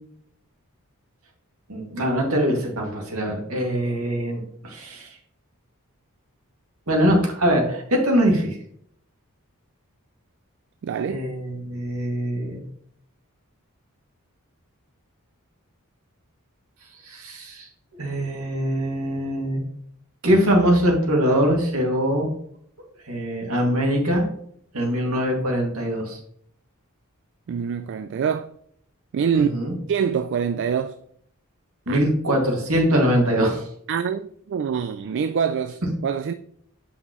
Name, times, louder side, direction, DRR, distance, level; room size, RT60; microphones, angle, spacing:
voice 1, 1.7-5.2 6.9-8.6 11.1-12.6 17.0-17.7 18.0-19.6 20.2-22.3 23.1-24.2 24.7-26.2 29.3-29.7 31.9-33.6, equal, 75° right, 2.1 m, -22 dB
voice 2, 10.8-11.2 27.5-28.5 29.1-29.5 29.9-31.0 31.9-32.0 33.9-36.3, right 7 dB, 55° right, 0.3 m, -25 dB
8.0 x 5.6 x 3.0 m
head